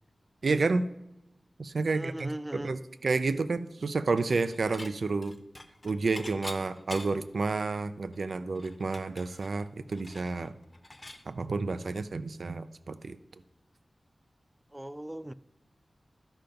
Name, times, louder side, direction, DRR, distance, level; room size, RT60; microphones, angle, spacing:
voice 1, 0.4-0.9 1.6-5.3 5.8-10.5 11.3-13.2, right 3 dB, 75° right, 0.5 m, -30 dB
voice 2, 1.9-2.7 14.7-15.3, right 1 dB, 10° right, 0.3 m, -39 dB
Dishes pots and pans / Chink clink, 4.2-4.9 5.2-7.3 7.8-7.9 8.1-11.2, left 2 dB, 25° left, 0.7 m, -45 dB
12.0 x 5.7 x 5.2 m
wide cardioid pair, 95°, 0 cm